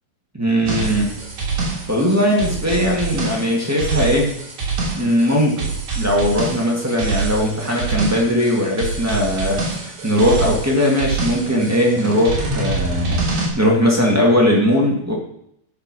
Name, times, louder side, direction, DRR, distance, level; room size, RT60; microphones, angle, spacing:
voice 1, 0.3-1.1 1.9-4.3 5.0-5.7 5.9-15.1, equal, 25° right, -2 dB, 0.3 m, -19 dB
sound 1, 0.7-13.5, right 4 dB, 50° right, 3.8 m, -25 dB
13.0 x 5.9 x 6.2 m, 0.74 s
omnidirectional pair, 4.3 m